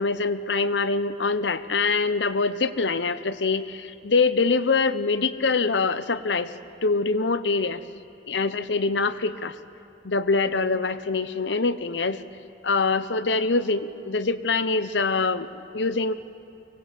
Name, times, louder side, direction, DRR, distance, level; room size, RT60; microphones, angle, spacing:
voice 1, 0.0-6.5 6.8-7.8 8.3-9.6 10.0-12.2 12.6-16.1, left 4 dB, 80° left, 13 dB, 0.8 m, -24 dB
24.0 x 18.5 x 8.3 m, 2.5 s
head